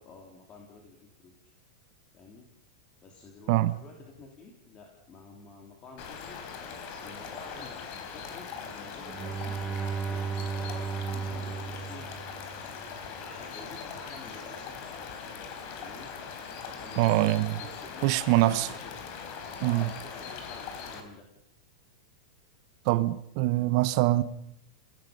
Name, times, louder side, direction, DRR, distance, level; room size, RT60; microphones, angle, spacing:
voice 1, 0.0-1.5 2.1-2.4 3.0-6.4 7.0-9.8 10.1-12.1 13.2-15.0 15.7-16.1 16.6-17.3 17.6-19.0 19.5-21.3, left 3 dB, 30° left, 3.6 m, -50 dB
sound 1, 6.0-21.0, left 6 dB, 45° left, 3.8 m, -41 dB
Bowed string instrument, 9.0-12.8, right 6 dB, 15° right, 1.0 m, -35 dB
voice 2, 17.0-17.6 18.0-18.7 19.6-19.9 22.8-24.2, right 17 dB, 50° right, 1.0 m, -24 dB
29.0 x 17.5 x 5.4 m
supercardioid pair, 140°, 4 cm